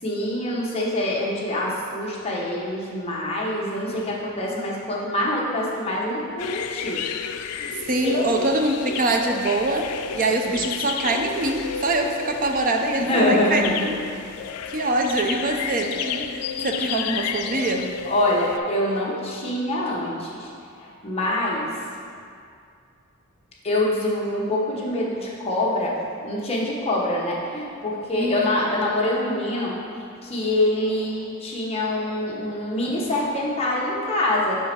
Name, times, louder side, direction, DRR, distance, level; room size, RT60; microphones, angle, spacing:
voice 1, 0.0-7.0 7.4-7.7 8.0-8.2 13.0-13.8 16.3-16.9 18.0-20.5 20.8-21.7 23.6-26.0 26.2-34.6, left 1 dB, 25° left, -4 dB, 1.0 m, -25 dB
sound 1, 6.4-18.6, left 7 dB, 85° left, 0.3 m, -32 dB
voice 2, 7.8-13.9 14.7-17.9 28.1-28.7, right 2 dB, 40° right, 3 dB, 0.5 m, -24 dB
6.1 x 4.6 x 4.4 m, 2.3 s
head